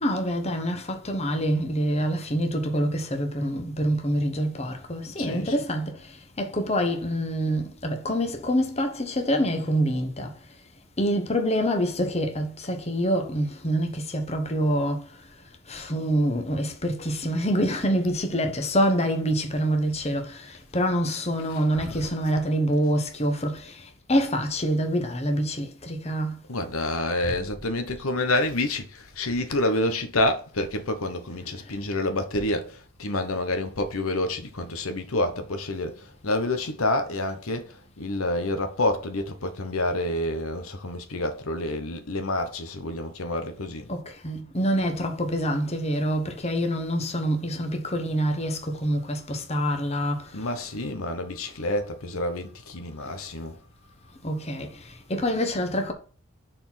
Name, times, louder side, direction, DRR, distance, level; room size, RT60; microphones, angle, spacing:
voice 1, 0.0-10.3 11.0-15.2 15.7-26.4 31.6-31.7 43.9-50.5 54.2-55.9, equal, 30° left, 1.3 m, -26 dB
voice 2, 5.2-5.6 21.5-22.1 26.5-43.9 50.3-53.6, left 1 dB, 80° left, 1.1 m, -28 dB
6.7 x 4.4 x 5.9 m
head